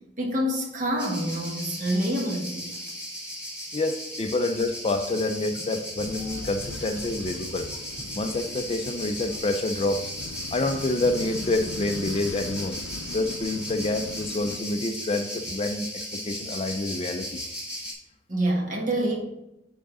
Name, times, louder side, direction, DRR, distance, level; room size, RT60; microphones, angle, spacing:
voice 1, 0.2-2.6 18.3-19.2, right 1 dB, 40° right, -1 dB, 1.4 m, -26 dB
sound 1, 1.0-17.9, equal, 5° right, 1.9 m, -36 dB
voice 2, 3.7-7.7 8.1-10.0 10.5-12.7 13.1-17.4, left 2 dB, 30° left, 7 dB, 0.4 m, -27 dB
sound 2, 6.0-14.6, left 3 dB, 85° left, 0.5 m, -40 dB
9.3 x 3.7 x 4.0 m, 0.89 s
head